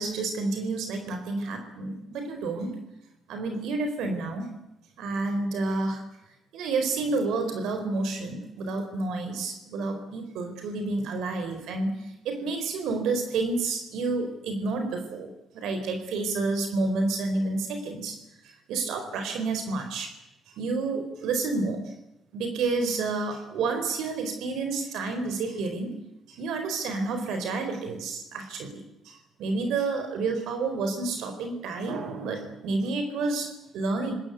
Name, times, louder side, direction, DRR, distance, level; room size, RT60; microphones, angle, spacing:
voice 1, 0.0-2.8 3.3-4.5 5.0-6.0 6.5-11.9 12.2-18.2 18.4-20.1 20.6-21.9 22.3-25.9 26.3-34.1, right 3 dB, 85° right, 5 dB, 4.7 m, -30 dB
27.0 x 19.5 x 8.4 m, 0.89 s
cardioid pair, 90°, 0 cm